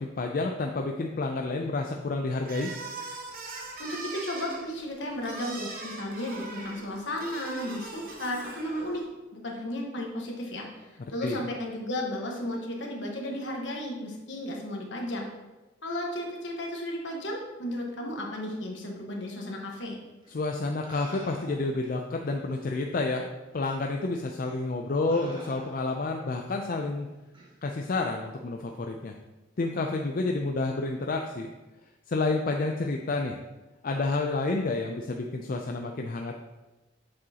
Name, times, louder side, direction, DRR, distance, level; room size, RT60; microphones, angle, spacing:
voice 1, 0.0-2.7 11.2-11.4 20.3-23.3 23.5-27.1 27.6-29.1 29.6-31.5 32.1-33.4 33.8-36.4, left 3 dB, 45° left, 2 dB, 0.4 m, -29 dB
sound 1, 2.4-9.1, right 3 dB, 50° right, 1.0 m, -41 dB
voice 2, 3.8-9.0 9.3-15.3 15.8-20.0, left 1 dB, 65° left, 0 dB, 1.3 m, -34 dB
sound 2, 20.2-20.3 20.9-21.8 22.7-22.8 23.6-23.8 24.5-24.7 25.1-26.1 27.3-27.5, right 1 dB, 25° right, 1.2 m, -49 dB
7.6 x 6.1 x 2.9 m, 1.1 s
head